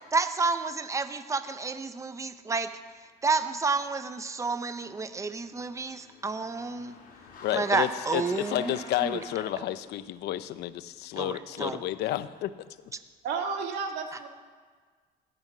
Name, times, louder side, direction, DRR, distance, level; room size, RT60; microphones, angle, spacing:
voice 1, 0.1-2.7 3.2-7.0 7.5-9.1 11.2-11.8, right 4 dB, 20° right, 10 dB, 0.8 m, -30 dB
Car / Engine, 4.6-9.7, left 3 dB, 55° left, 5.2 m, -47 dB
voice 2, 7.4-12.5, left 13 dB, 80° left, 13 dB, 0.8 m, -31 dB
voice 3, 13.2-14.3, right 5 dB, 80° right, 3 dB, 2.3 m, -32 dB
17.0 x 12.0 x 6.2 m, 1.5 s
cardioid pair, 110°, 17 cm